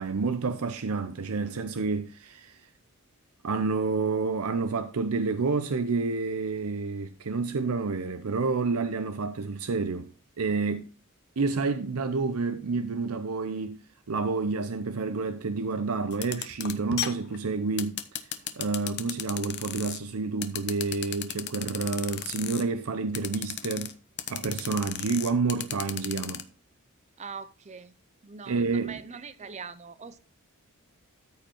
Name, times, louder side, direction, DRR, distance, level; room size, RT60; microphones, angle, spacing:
voice 1, 0.0-2.6 3.4-10.1 10.4-10.9 11.4-13.8 14.1-18.2 18.5-24.0 24.3-26.5 28.5-29.0, right 4 dB, 70° right, 0.6 m, -29 dB
sound 1, 16.1-20.0 20.4-22.6 23.1-23.9 24.2-26.4, left 11 dB, 50° left, 0.8 m, -34 dB
voice 2, 27.2-27.9 28.2-30.2, right 5 dB, 30° right, 0.5 m, -42 dB
13.5 x 5.2 x 4.4 m
head